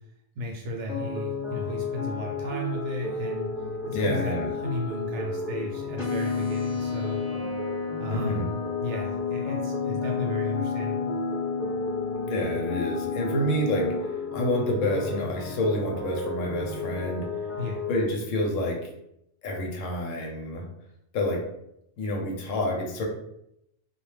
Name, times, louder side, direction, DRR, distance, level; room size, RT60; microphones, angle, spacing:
voice 1, 0.4-3.5 3.8-7.2 8.0-11.1 17.6-17.8, left 1 dB, 65° right, -1 dB, 0.8 m, -34 dB
sound 1, 0.9-18.0, left 3 dB, ahead, 0.7 m, -33 dB
voice 2, 3.9-4.5 8.1-8.5 12.3-17.3 17.9-18.9 19.4-20.7 21.1-21.4 22.0-23.1, left 1 dB, 75° left, 1 dB, 0.9 m, -28 dB
sound 2, 6.0-14.0, left 5 dB, 35° left, 0.9 m, -32 dB
2.3 x 2.1 x 3.1 m, 0.79 s
omnidirectional pair, 1.4 m